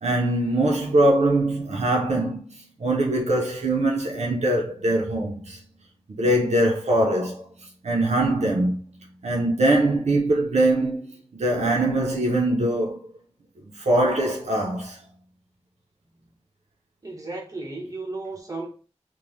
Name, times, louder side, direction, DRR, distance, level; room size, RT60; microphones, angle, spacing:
voice 1, 0.0-5.6 6.1-7.4 7.8-8.8 9.2-11.1 11.3-13.1 13.8-15.0, right 1 dB, 80° right, 0.5 m, -22 dB
voice 2, 17.0-18.7, right 2 dB, 30° right, 0.9 m, -34 dB
3.0 x 2.0 x 2.5 m
wide cardioid pair, 50°, 11 cm